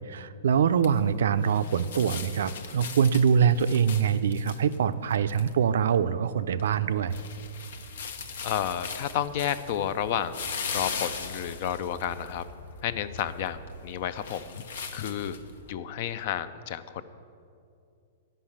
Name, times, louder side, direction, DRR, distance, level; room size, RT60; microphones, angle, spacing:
voice 1, 0.0-7.2, right 7 dB, 80° right, 13 dB, 0.4 m, -24 dB
sound 1, 0.6-15.7, left 5 dB, 70° left, 0.8 m, -40 dB
voice 2, 8.4-10.4 10.7-12.4 12.8-14.6 14.9-15.4 15.7-17.0, left 10 dB, 50° left, 14 dB, 0.4 m, -31 dB
10.0 x 5.6 x 7.3 m, 2.5 s
hypercardioid pair, 150°, 0 cm